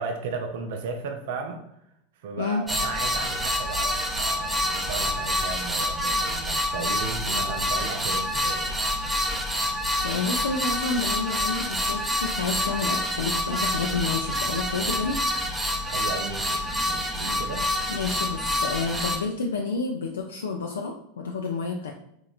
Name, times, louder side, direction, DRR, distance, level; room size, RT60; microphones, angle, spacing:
voice 1, 0.0-1.6 2.2-8.8 15.8-17.7, right 4 dB, 60° right, 5 dB, 0.4 m, -35 dB
sound 1, 2.7-19.2, left 1 dB, 10° right, 0.6 m, -27 dB
voice 2, 10.0-15.2 17.9-21.9, left 4 dB, 75° left, 1 dB, 0.3 m, -29 dB
3.7 x 2.9 x 2.4 m, 0.77 s
figure-of-eight pair, 85°, 0 cm